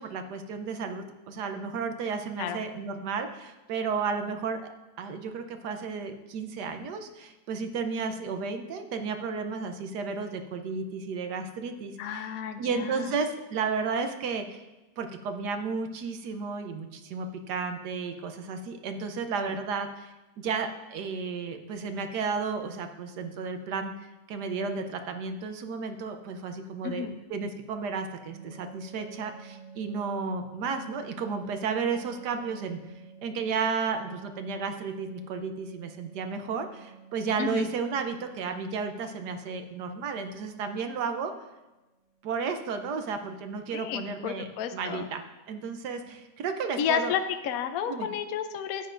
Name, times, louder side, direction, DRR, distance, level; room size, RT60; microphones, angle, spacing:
voice 1, 0.0-4.6 5.0-12.3 12.6-14.6 15.0-32.8 33.2-41.3 42.2-47.1 47.9-48.1, right 5 dB, 75° right, 7 dB, 1.3 m, -33 dB
voice 2, 12.0-13.1 19.5-19.6 26.8-27.2 37.4-37.7 43.7-45.1 46.8-48.9, left 8 dB, 65° left, 8 dB, 1.0 m, -32 dB
sound 1, 28.3-40.3 42.2-42.4 42.7-42.8 43.2-43.4 43.7-43.9, right 5 dB, 15° left, 3.5 m, -51 dB
13.5 x 9.5 x 2.6 m, 1.1 s
omnidirectional pair, 1.8 m